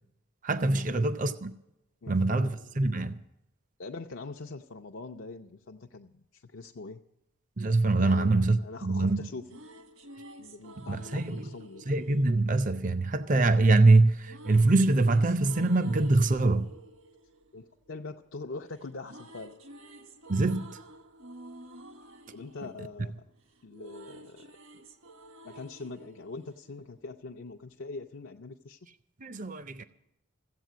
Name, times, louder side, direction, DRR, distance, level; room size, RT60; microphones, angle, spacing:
voice 1, 0.4-1.5 2.1-3.2 7.6-9.2 10.8-11.5 11.9-16.7 20.3-20.8 29.2-29.8, right 2 dB, 35° right, 0.5 m, -24 dB
voice 2, 2.0-2.9 3.8-7.0 8.0-9.6 10.4-11.9 17.5-19.5 22.3-23.1 23.6-24.8 25.4-28.8, left 3 dB, 65° left, 0.6 m, -43 dB
sound 1, 9.2-13.4 14.2-18.5 18.7-27.2, right 1 dB, 75° right, 1.5 m, -51 dB
15.5 x 8.1 x 9.2 m
head